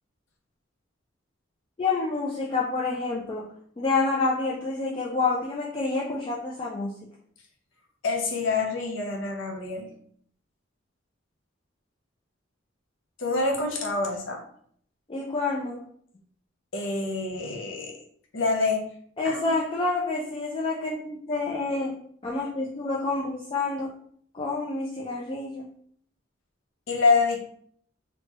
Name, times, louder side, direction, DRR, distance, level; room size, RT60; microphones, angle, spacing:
voice 1, 1.8-3.5 3.8-6.9 15.1-15.8 19.2-22.0 22.2-23.9 24.3-25.7, left 3 dB, 25° left, -4 dB, 0.3 m, -28 dB
voice 2, 8.0-9.9 13.2-14.4 16.7-18.0 18.3-18.9 19.2-19.4 26.9-27.4, left 3 dB, 75° left, 1 dB, 0.6 m, -26 dB
3.0 x 2.2 x 2.9 m, 0.62 s
head